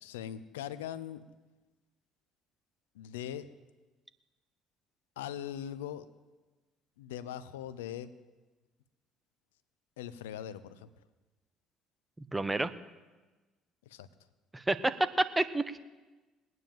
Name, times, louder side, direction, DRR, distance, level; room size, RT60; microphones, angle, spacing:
voice 1, 0.0-1.2 2.9-3.5 5.2-6.1 7.0-8.1 10.0-10.9 13.9-14.1, left 10 dB, 85° left, 14 dB, 0.7 m, -40 dB
voice 2, 12.2-12.7 14.5-15.8, right 2 dB, 15° right, 13 dB, 1.1 m, -30 dB
20.0 x 9.5 x 7.4 m, 1.2 s
hypercardioid pair, 60°, 0 cm